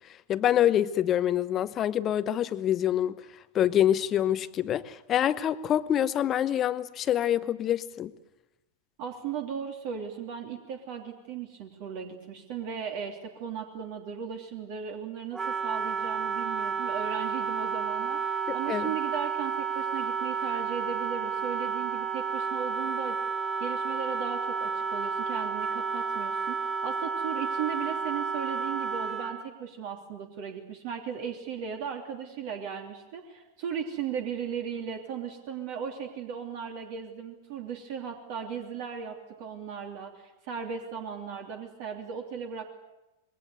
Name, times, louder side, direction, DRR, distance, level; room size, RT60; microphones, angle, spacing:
voice 1, 0.3-3.1 3.5-8.1 18.5-18.9, left 11 dB, 30° left, 14 dB, 1.0 m, -26 dB
voice 2, 9.0-23.2 23.6-42.7, right 7 dB, 45° right, 3 dB, 3.0 m, -37 dB
Wind instrument woodwind instrument, 15.3-29.4, right 5 dB, 10° right, 1.4 m, -31 dB
27.0 x 22.0 x 8.2 m, 0.97 s
figure-of-eight pair, 95°, 0 cm